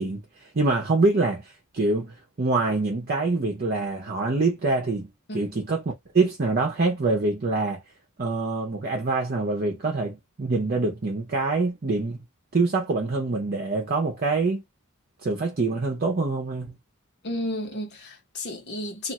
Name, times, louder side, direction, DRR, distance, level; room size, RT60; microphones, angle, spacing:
voice 1, 0.0-7.8 8.2-12.2 12.5-14.6 15.2-16.7, right 3 dB, 45° right, 0.7 m, -25 dB
voice 2, 17.2-19.1, left 1 dB, 55° left, 1.1 m, -32 dB
2.5 x 2.4 x 4.0 m
head